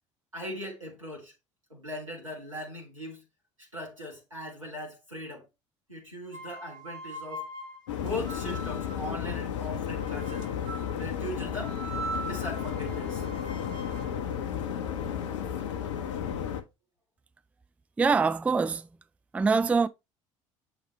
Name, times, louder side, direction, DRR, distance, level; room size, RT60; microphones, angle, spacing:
voice 1, 0.3-1.3 1.7-3.2 3.7-5.4 5.9-7.4 8.0-10.4 10.9-11.8 12.2-13.3, left 1 dB, 90° right, 1.7 m, -39 dB
sound 1, 6.3-9.1 10.0-11.0 11.6-15.6, right 2 dB, 25° right, 4.0 m, -42 dB
sound 2, 7.9-16.6, left 8 dB, 70° left, 0.7 m, -33 dB
voice 2, 18.0-18.9 19.3-19.9, right 4 dB, 10° right, 0.3 m, -24 dB
7.0 x 5.0 x 3.0 m
figure-of-eight pair, 60°, 16 cm